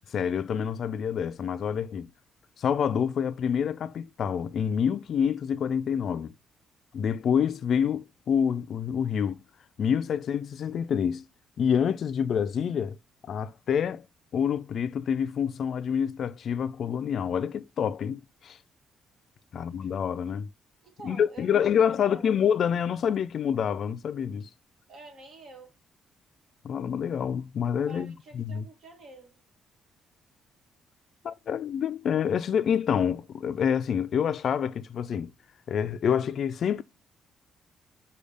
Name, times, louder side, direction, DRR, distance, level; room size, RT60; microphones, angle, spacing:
voice 1, 0.1-2.1 2.6-6.3 6.9-9.4 9.8-11.2 11.6-13.0 13.3-14.1 14.3-18.6 19.5-20.5 21.0-24.5 26.6-28.6 31.2-35.3 35.7-36.8, left 8 dB, 60° left, 0.4 m, -27 dB
voice 2, 19.5-19.9 20.8-22.3 24.9-25.8 27.9-29.4, right 3 dB, 60° right, 1.5 m, -48 dB
6.3 x 2.3 x 3.4 m
cardioid pair, 90°, 0 cm